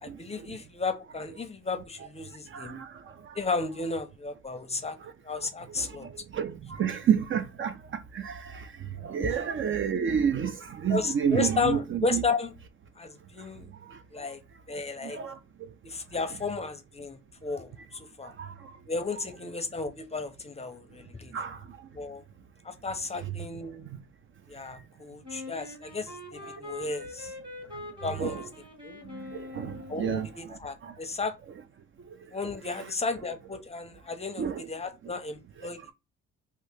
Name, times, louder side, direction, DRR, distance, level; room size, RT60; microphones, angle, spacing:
voice 1, 0.0-2.8 3.3-5.0 5.2-6.1 9.3-9.4 10.9-12.5 13.0-13.7 14.1-14.4 14.7-15.2 15.8-18.3 18.9-21.3 21.9-22.2 22.6-23.9 24.5-27.3 28.0-28.4 28.8-29.0 29.9-31.4 32.3-35.8, left 4 dB, 20° left, 0.6 m, -33 dB
voice 2, 2.5-2.9 6.3-6.5 6.8-7.7 8.1-8.3 9.0-10.5 10.8-12.2 15.1-15.3 21.3-21.6 28.2-28.4 29.6-30.3 34.4-34.6, right 8 dB, 45° right, 0.4 m, -28 dB
Wind instrument woodwind instrument, 25.2-30.3, left 2 dB, 15° right, 1.3 m, -43 dB
2.8 x 2.7 x 3.3 m
cardioid pair, 90°, 30 cm